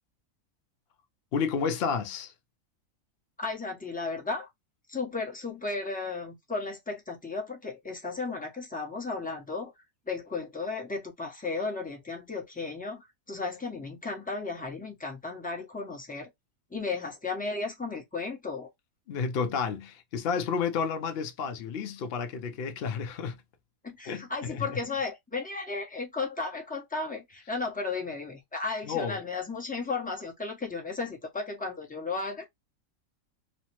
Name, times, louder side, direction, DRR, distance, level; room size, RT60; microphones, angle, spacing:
voice 1, 1.3-2.3 19.1-23.4 24.1-24.8 28.8-29.2, left 6 dB, 60° left, 0.6 m, -31 dB
voice 2, 3.4-4.5 4.9-9.7 10.1-16.3 16.7-18.7 23.8-32.4, left 4 dB, 10° left, 0.5 m, -34 dB
3.1 x 2.0 x 2.9 m
omnidirectional pair, 1.6 m